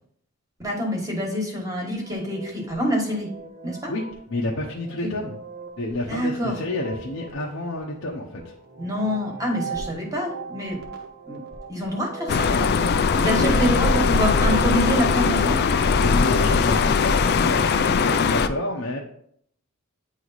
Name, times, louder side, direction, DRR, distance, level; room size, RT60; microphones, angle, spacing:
voice 1, 0.6-3.3 3.6-3.9 5.0-5.1 6.1-6.6 8.8-10.8 11.3-11.4 11.7-12.7 13.1-15.6, equal, 15° right, 0 dB, 1.3 m, -26 dB
sound 1, 2.0-14.9, right 3 dB, 50° right, 1.0 m, -38 dB
voice 2, 4.3-5.3 5.8-8.5 13.2-13.8 16.0-19.0, left 2 dB, 70° left, -2 dB, 0.8 m, -29 dB
sound 2, 12.3-18.5, left 5 dB, 50° left, 0.3 m, -20 dB
8.9 x 3.1 x 4.0 m, 0.66 s
head